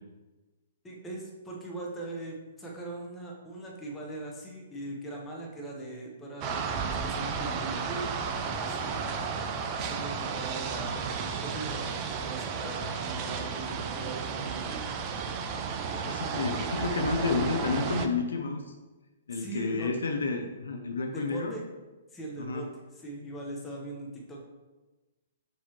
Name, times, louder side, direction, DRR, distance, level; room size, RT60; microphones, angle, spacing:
voice 1, 0.8-8.1 8.4-9.1 9.6-11.8 12.1-14.8 19.3-19.9 21.1-21.7 22.1-22.7 22.9-24.4, right 2 dB, 10° left, -2 dB, 0.8 m, -40 dB
sound 1, 6.4-18.1, right 5 dB, 30° right, 0.3 m, -33 dB
voice 2, 15.9-18.7 19.3-21.5 22.4-22.7, left 4 dB, 65° left, 3 dB, 0.5 m, -30 dB
6.0 x 2.8 x 3.0 m, 1.2 s
figure-of-eight pair, 115°, 0 cm